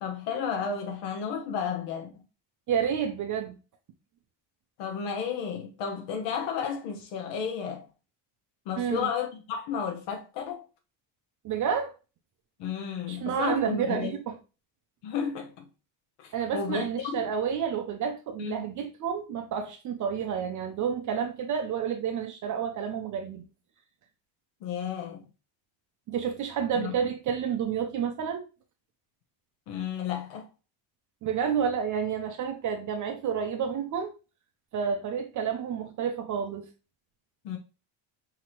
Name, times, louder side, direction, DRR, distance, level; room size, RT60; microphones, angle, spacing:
voice 1, 0.0-2.1 4.8-7.9 8.7-10.6 12.6-14.1 15.0-15.7 16.2-17.3 18.4-18.7 24.6-25.2 26.7-26.9 29.7-30.5 37.4-37.6, left 7 dB, 65° left, 0.9 m, -32 dB
voice 2, 2.7-3.6 8.8-9.1 11.4-11.9 13.1-14.4 16.3-23.5 26.1-28.4 31.2-34.1 34.7-36.7, right 7 dB, 40° right, 0.5 m, -30 dB
5.8 x 2.9 x 3.0 m
cardioid pair, 175°, 46 cm